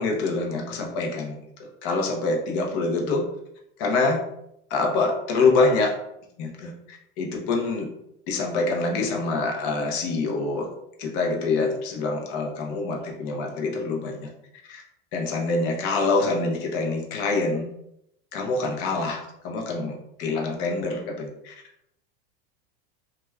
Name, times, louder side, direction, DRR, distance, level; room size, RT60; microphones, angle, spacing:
voice 1, 0.0-3.3 3.8-4.2 4.7-6.0 6.4-7.9 8.3-10.7 11.0-14.3 14.7-14.8 15.1-17.7 18.3-21.5, left 3 dB, 40° left, 2 dB, 0.6 m, -25 dB
2.3 x 2.3 x 3.1 m, 0.78 s
supercardioid pair, 155°, 33 cm